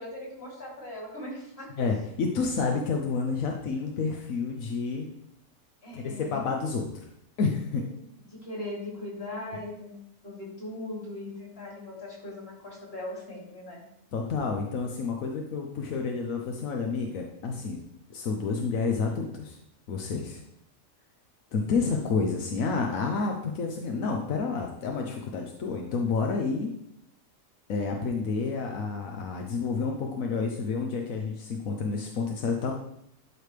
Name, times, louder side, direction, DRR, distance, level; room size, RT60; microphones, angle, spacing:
voice 1, 0.0-1.7 5.8-6.4 7.7-7.8 8.3-9.9 10.2-13.8, left 1 dB, 45° left, -4 dB, 3.5 m, -39 dB
voice 2, 1.8-5.1 5.9-6.9 7.4-7.8 9.5-9.6 14.1-17.8 18.1-19.6 19.9-20.4 21.5-26.7 27.7-32.7, left 4 dB, 90° left, 2 dB, 1.3 m, -29 dB
12.0 x 5.0 x 3.3 m, 0.74 s
omnidirectional pair, 1.4 m